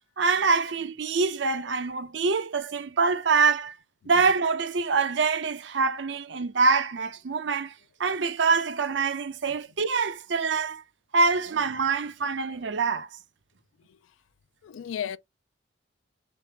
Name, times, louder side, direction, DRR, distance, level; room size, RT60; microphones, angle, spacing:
voice 1, 0.2-3.8 4.1-10.8 11.1-13.1, right 4 dB, 65° right, 0.6 m, -25 dB
voice 2, 14.6-15.2, left 9 dB, 85° left, 0.3 m, -34 dB
3.9 x 3.5 x 2.8 m
head